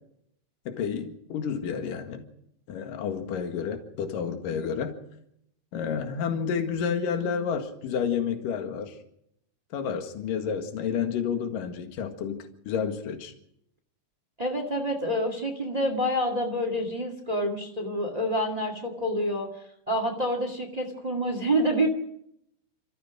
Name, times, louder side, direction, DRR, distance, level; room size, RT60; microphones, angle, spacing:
voice 1, 0.7-2.2 2.7-5.0 5.7-8.9 9.7-13.3, left 7 dB, 60° left, 5 dB, 3.2 m, -30 dB
voice 2, 14.4-19.5 19.9-21.9, equal, 65° right, 4 dB, 0.4 m, -27 dB
29.0 x 14.5 x 6.2 m, 0.75 s
omnidirectional pair, 5.0 m